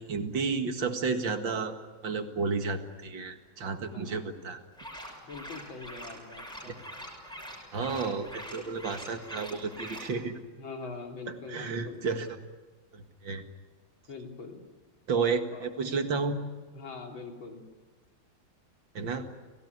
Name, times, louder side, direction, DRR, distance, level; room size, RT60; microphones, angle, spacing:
voice 1, 0.0-1.8 2.0-4.6 6.7-6.8 7.7-10.4 11.3-12.4 12.9-13.5 15.1-16.4 18.9-19.3, right 4 dB, 70° right, 7 dB, 2.6 m, -32 dB
voice 2, 3.8-4.4 5.3-6.8 10.6-12.0 14.1-14.6 15.5-15.7 16.7-17.7, left 4 dB, 80° left, 2 dB, 4.2 m, -43 dB
sound 1, 4.7-10.1, equal, ahead, 6.1 m, -44 dB
29.0 x 18.5 x 9.7 m, 1.3 s
omnidirectional pair, 2.1 m